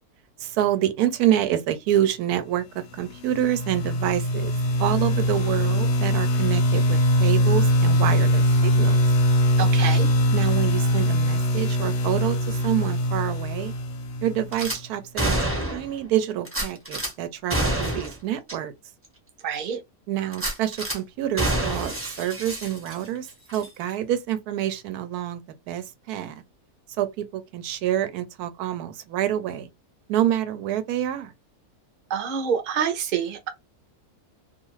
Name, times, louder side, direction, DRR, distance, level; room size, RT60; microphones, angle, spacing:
voice 1, 0.4-4.5 4.8-9.1 10.3-13.7 14.2-15.4 15.7-18.7 20.1-26.3 27.0-29.7 30.1-31.3, right 11 dB, 85° right, 1.1 m, -27 dB
sound 1, 2.9-14.7, equal, 60° left, 0.8 m, -22 dB
voice 2, 9.6-10.1 19.4-19.8 32.1-33.5, right 7 dB, 45° right, 0.6 m, -26 dB
Gunshot gunfire / Glass, 14.5-14.8 15.2-15.9 16.5-17.1 17.5-18.2 18.5-18.6 19.0-19.1 20.3-21.0 21.4-23.2 23.5-23.7, right 1 dB, 10° right, 0.8 m, -27 dB
2.5 x 2.4 x 3.0 m
omnidirectional pair, 1.6 m